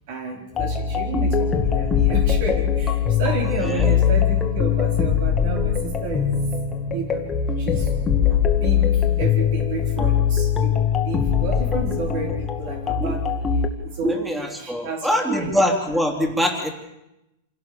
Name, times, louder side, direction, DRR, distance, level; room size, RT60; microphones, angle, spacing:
voice 1, 0.1-6.3 6.9-7.3 7.6-7.9 8.3-13.2 13.8-15.5, right 4 dB, 55° right, 2 dB, 4.5 m, -31 dB
sound 1, 0.5-13.7, left 8 dB, 20° left, 2.1 m, -21 dB
voice 2, 3.5-4.0 12.9-13.2 14.0-16.7, equal, 5° right, 4 dB, 3.2 m, -24 dB
27.0 x 17.5 x 7.0 m, 0.91 s
supercardioid pair, 155°, 0 cm